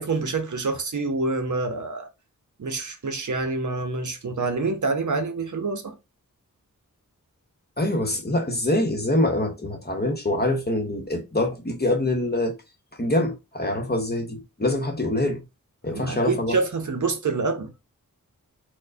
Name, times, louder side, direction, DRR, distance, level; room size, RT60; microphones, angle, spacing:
voice 1, 0.0-2.1 2.6-5.9 15.9-17.7, right 3 dB, 60° right, 0.7 m, -27 dB
voice 2, 7.8-12.5 13.0-15.4 15.8-16.6, left 1 dB, 30° left, 0.9 m, -25 dB
4.4 x 2.1 x 2.6 m
wide cardioid pair, 65°, 34 cm